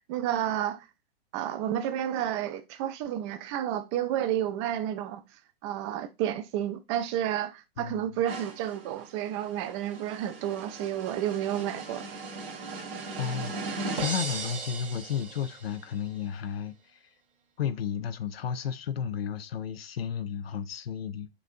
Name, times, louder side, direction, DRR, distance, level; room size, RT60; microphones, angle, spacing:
voice 1, 0.1-0.9 1.3-5.2 5.6-12.1, right 11 dB, 30° right, 0.4 m, -31 dB
voice 2, 7.8-8.1 13.2-17.0 17.6-21.3, left 8 dB, 75° left, 0.5 m, -33 dB
sound 1, 8.3-15.8, right 3 dB, 65° right, 1.2 m, -38 dB
6.6 x 2.6 x 2.5 m
figure-of-eight pair, 105°, 30 cm